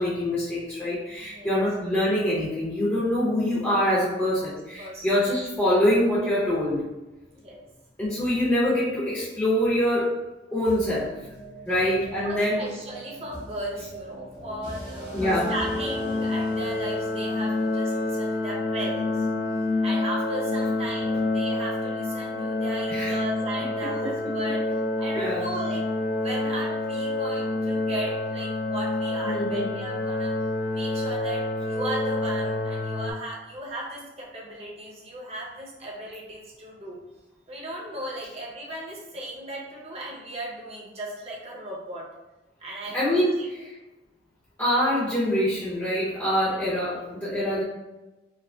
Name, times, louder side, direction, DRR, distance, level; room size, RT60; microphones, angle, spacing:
voice 1, 0.0-6.8 8.0-10.2 10.5-11.1 11.7-12.6 15.1-15.5 22.9-23.1 25.1-25.5 29.2-29.7 42.9-43.7 44.6-47.6, left 1 dB, 10° left, -10 dB, 0.7 m, -24 dB
voice 2, 1.2-1.6 4.4-4.5 4.8-5.1 7.3-7.6 11.6-12.0 12.2-19.3 19.8-24.6 25.0-30.4 30.7-37.0 37.5-42.0 42.6-43.5, right 1 dB, 35° right, -4 dB, 0.8 m, -36 dB
sound 1, 10.7-18.5, right 1 dB, 85° right, 1.5 m, -41 dB
sound 2, 15.2-33.1, left 2 dB, 90° left, 0.5 m, -28 dB
4.7 x 2.0 x 2.3 m, 1.0 s
head